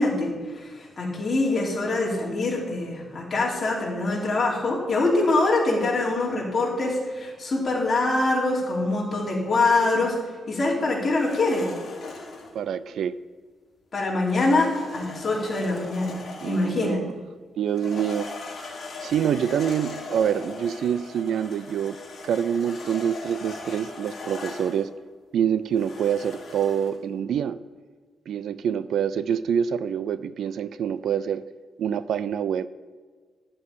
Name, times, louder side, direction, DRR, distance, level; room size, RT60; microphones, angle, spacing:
voice 1, 0.0-10.2 10.5-11.7 13.9-17.0, left 2 dB, 30° left, -4 dB, 3.2 m, -24 dB
sound 1, 11.1-12.5 14.2-16.8 17.7-24.9 25.7-27.0, left 3 dB, 45° left, 2.4 m, -39 dB
voice 2, 12.5-13.2 16.4-17.1 17.6-18.3 19.0-22.0 22.2-24.9 25.3-27.6 28.3-31.5 31.8-32.7, right 8 dB, 65° right, 15 dB, 0.3 m, -26 dB
12.0 x 5.3 x 8.5 m, 1.5 s
wide cardioid pair, 175°, 0 cm